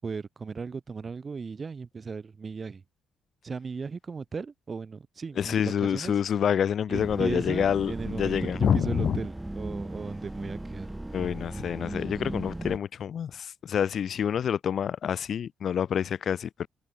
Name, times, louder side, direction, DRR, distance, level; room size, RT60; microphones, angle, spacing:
voice 1, 0.0-2.8 3.4-6.2 6.9-10.9, right 5 dB, 35° right, 6.1 m, -36 dB
voice 2, 5.4-9.2 11.1-16.7, left 8 dB, 60° left, 5.1 m, -27 dB
sound 1, 6.9-12.8, right 1 dB, 10° right, 5.9 m, -37 dB
cardioid pair, 90°, 0 cm